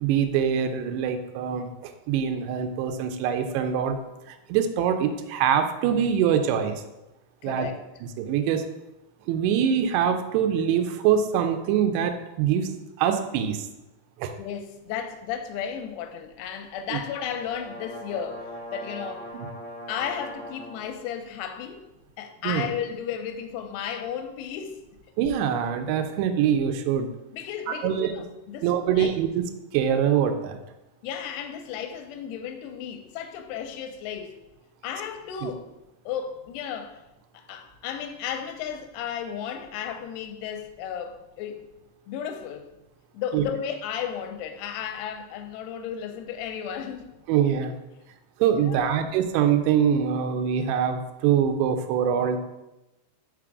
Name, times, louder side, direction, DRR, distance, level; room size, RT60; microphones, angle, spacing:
voice 1, 0.0-4.0 4.5-6.8 7.4-7.7 8.2-8.6 9.3-13.7 14.2-14.3 16.9-17.0 22.4-22.7 25.2-27.1 27.7-28.1 28.6-29.4 29.7-30.6 35.4-35.5 43.3-43.4 47.3-47.7 48.4-52.4, right 8 dB, 80° right, 6 dB, 2.6 m, -24 dB
voice 2, 7.4-7.8 14.3-19.3 19.9-21.8 22.2-24.8 27.3-29.2 31.0-34.3 34.8-35.7 36.1-37.0 37.3-41.6 42.1-42.7 43.1-47.1 48.6-49.1, left 8 dB, 85° left, 6 dB, 2.4 m, -34 dB
sound 1, 17.0-20.9, equal, 50° left, 1.1 m, -40 dB
6.1 x 3.7 x 4.7 m, 0.97 s
omnidirectional pair, 5.0 m